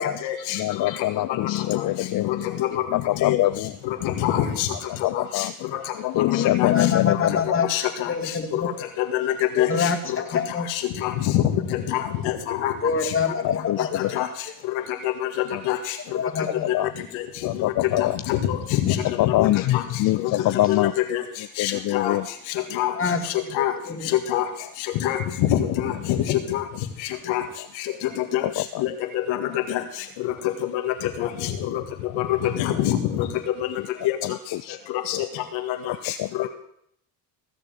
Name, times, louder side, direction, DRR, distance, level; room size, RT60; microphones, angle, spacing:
voice 1, 0.5-2.5 2.9-3.7 5.0-5.5 6.2-7.6 13.4-14.1 16.7-16.9 17.5-18.2 19.2-20.9 21.6-22.2 34.6-34.8 36.2-36.3, left 16 dB, 45° left, 13 dB, 0.5 m, -23 dB
voice 2, 4.0-4.7 5.1-5.2 6.6-6.7 7.7-8.1 9.1-9.3 9.6-9.9 11.0-11.4 11.9-12.7 14.2-14.3 15.7-15.8 18.3-19.0 19.3-19.5 19.7-19.8 20.7-21.2 21.6-22.2 22.8-22.9 23.6-23.7 24.3-24.4 25.0-26.6 27.3-27.4 28.3-28.4 28.8-28.9 29.3-29.4 29.7-29.8 30.9-31.3 32.6-33.3 34.1-34.2 35.1-35.2, left 12 dB, 70° left, 6 dB, 1.9 m, -24 dB
voice 3, 6.4-7.7 8.1-8.7 9.6-10.7 12.8-14.1 16.1-16.7 23.0-23.5 23.8-24.1, left 5 dB, 25° left, 5 dB, 2.3 m, -26 dB
16.0 x 6.8 x 7.7 m, 0.72 s
hypercardioid pair, 65°, 48 cm